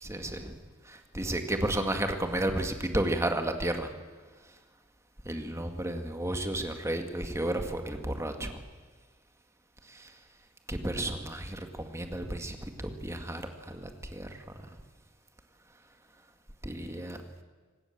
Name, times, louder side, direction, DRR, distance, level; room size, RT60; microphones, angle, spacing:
voice 1, 0.0-0.6 0.9-3.9 5.3-8.5 9.9-10.1 10.7-14.4 16.6-17.2, right 1 dB, 15° right, 6 dB, 2.0 m, -32 dB
25.0 x 19.0 x 7.3 m, 1.4 s
head